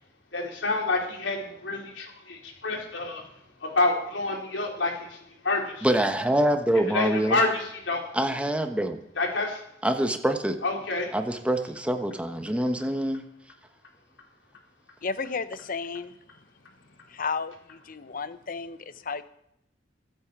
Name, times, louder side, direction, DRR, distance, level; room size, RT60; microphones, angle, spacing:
voice 1, 0.3-3.2 3.6-5.2 5.4-5.9 6.9-8.1 9.2-9.6 10.6-11.1, left 2 dB, 85° left, 3.7 m, -28 dB
voice 2, 5.8-7.4 8.1-9.0 9.8-10.6 11.1-13.2, right 1 dB, 5° right, 1.2 m, -25 dB
voice 3, 15.0-16.1 17.1-19.2, left 5 dB, 50° left, 0.8 m, -33 dB
22.5 x 8.9 x 4.7 m
head